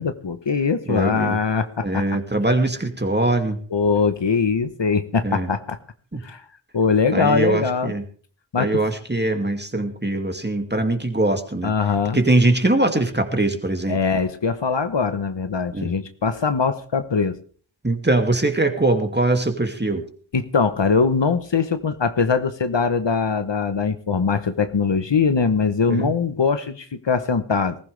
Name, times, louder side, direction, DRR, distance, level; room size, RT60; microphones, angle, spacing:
voice 1, 0.0-2.0 3.7-5.8 6.2-6.4 6.7-7.9 8.5-8.7 11.6-12.2 13.9-17.4 20.3-27.8, left 5 dB, 65° left, 10 dB, 1.1 m, -21 dB
voice 2, 0.9-1.4 1.8-3.6 5.2-5.5 6.1-6.2 7.1-8.0 8.6-11.7 12.1-14.0 15.7-15.9 17.8-20.1 25.9-26.1, right 2 dB, 20° right, 5 dB, 2.4 m, -22 dB
20.0 x 15.0 x 3.4 m, 0.43 s
wide cardioid pair, 40°, 47 cm